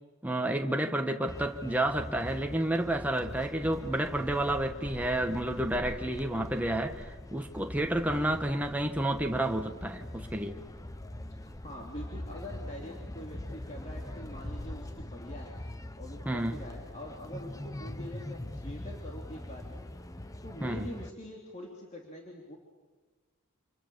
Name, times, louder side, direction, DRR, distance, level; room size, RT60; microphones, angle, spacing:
voice 1, 0.2-10.6 16.3-16.6 20.6-21.0, right 1 dB, 5° right, 1.6 m, -30 dB
sound 1, 1.3-21.1, left 1 dB, 15° left, 0.8 m, -42 dB
voice 2, 11.6-15.6 16.0-19.8 20.4-22.6, equal, 30° left, 3.0 m, -44 dB
29.5 x 27.0 x 7.1 m
head